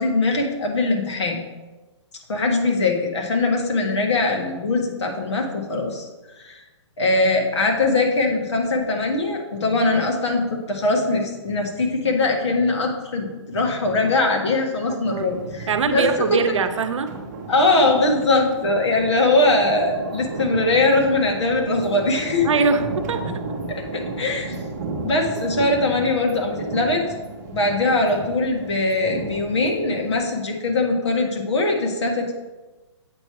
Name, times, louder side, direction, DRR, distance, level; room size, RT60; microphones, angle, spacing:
voice 1, 0.0-1.4 2.3-6.1 6.4-6.6 7.0-16.0 16.3-16.6 17.5-22.5 23.7-24.5 25.0-27.0 27.5-32.3, left 2 dB, 65° left, 1 dB, 1.5 m, -21 dB
voice 2, 14.9-15.3 15.7-17.1 22.4-23.2, right 5 dB, 80° right, 8 dB, 0.7 m, -22 dB
sound 1, 15.0-30.2, right 3 dB, 35° right, 0.8 m, -33 dB
7.8 x 3.1 x 5.7 m, 1.2 s
hypercardioid pair, 175°, 16 cm